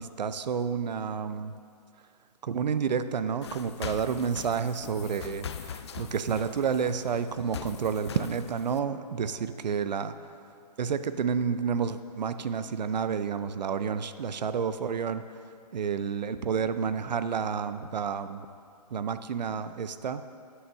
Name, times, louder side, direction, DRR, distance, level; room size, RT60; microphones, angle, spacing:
voice 1, 0.0-1.5 2.4-10.1 10.8-15.2 15.7-18.5 18.9-20.2, right 6 dB, 85° right, 12 dB, 0.6 m, -30 dB
sound 1, 3.4-8.8, left 7 dB, 40° left, 0.4 m, -42 dB
7.9 x 6.1 x 6.6 m, 2.4 s
hypercardioid pair, 165°, 21 cm